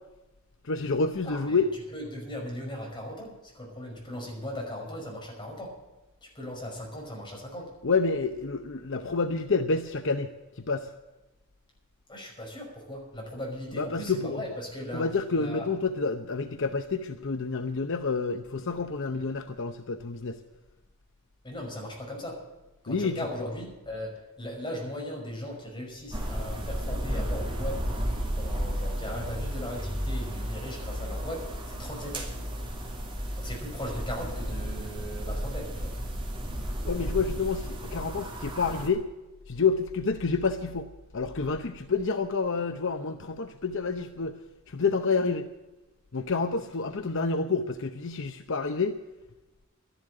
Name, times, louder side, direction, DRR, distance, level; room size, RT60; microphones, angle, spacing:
voice 1, 0.6-1.7 7.8-10.3 10.6-10.9 13.7-14.4 14.9-20.4 22.9-23.5 36.8-39.0 39.5-44.4 44.7-45.5 46.1-49.0, left 4 dB, 60° left, 8 dB, 0.8 m, -28 dB
voice 2, 1.2-1.6 1.9-5.7 6.2-7.7 12.1-15.0 15.4-15.7 21.4-22.4 22.8-32.3 33.4-35.9, left 1 dB, 20° left, -1 dB, 5.7 m, -38 dB
sound 1, 26.1-38.9, equal, 25° right, 2.6 m, -33 dB
13.0 x 11.5 x 7.7 m, 1.1 s
head